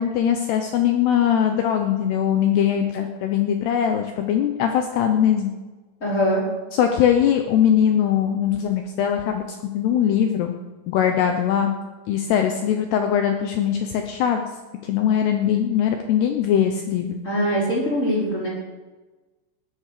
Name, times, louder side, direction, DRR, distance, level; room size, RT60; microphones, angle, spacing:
voice 1, 0.0-5.5 6.7-9.4 9.7-10.6 10.9-11.8 12.1-14.4 14.8-17.1, left 9 dB, 80° left, 5 dB, 2.4 m, -21 dB
voice 2, 6.0-6.4 17.2-18.5, equal, 15° left, -4 dB, 4.5 m, -22 dB
18.5 x 11.5 x 6.7 m, 1.3 s
omnidirectional pair, 5.9 m